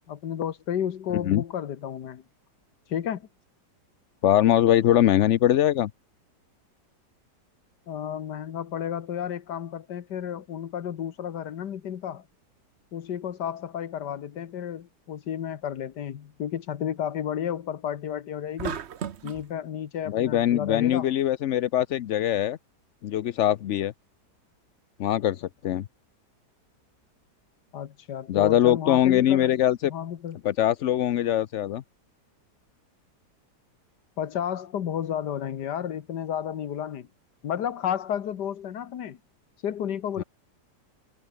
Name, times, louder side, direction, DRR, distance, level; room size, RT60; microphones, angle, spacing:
voice 1, 0.1-2.2 2.9-3.3 7.9-12.2 12.9-18.8 19.2-21.1 27.7-29.5 29.8-30.4 34.2-37.1 37.4-39.2 39.6-40.2, left 9 dB, 80° left, 1.8 m, -32 dB
voice 2, 1.1-1.4 4.2-5.9 20.1-22.6 23.0-23.9 25.0-25.8 28.3-29.9 30.4-31.8, left 12 dB, 60° left, 0.8 m, -22 dB
sound 1, 18.6-19.5, right 8 dB, 50° right, 1.0 m, -34 dB
omnidirectional pair, 1.8 m